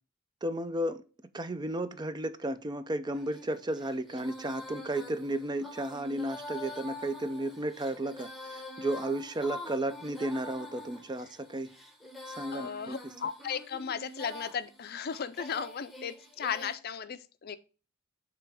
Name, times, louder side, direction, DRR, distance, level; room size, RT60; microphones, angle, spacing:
voice 1, 0.4-1.0 1.3-11.7 12.3-13.0, right 1 dB, 20° right, 0.4 m, -33 dB
Female singing, 3.1-16.8, left 1 dB, ahead, 1.0 m, -46 dB
voice 2, 12.5-17.6, left 7 dB, 50° left, 0.5 m, -36 dB
6.8 x 3.4 x 4.7 m
head